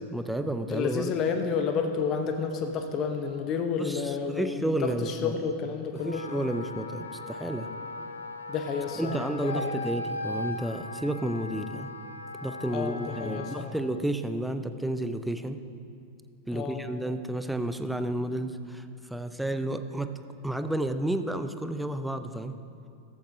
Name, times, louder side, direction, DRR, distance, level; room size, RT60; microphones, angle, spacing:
voice 1, 0.1-1.1 3.8-5.3 5.9-7.7 8.9-11.9 12.4-15.6 16.5-20.2 20.4-22.6, right 1 dB, 5° right, 9 dB, 0.5 m, -31 dB
voice 2, 0.7-6.2 8.5-9.7 12.7-13.7 16.5-16.8, left 6 dB, 35° left, 6 dB, 0.8 m, -30 dB
Wind instrument woodwind instrument, 6.0-13.7, left 2 dB, 70° left, 0.7 m, -38 dB
14.5 x 13.0 x 2.7 m, 2.5 s
figure-of-eight pair, 90°, 0 cm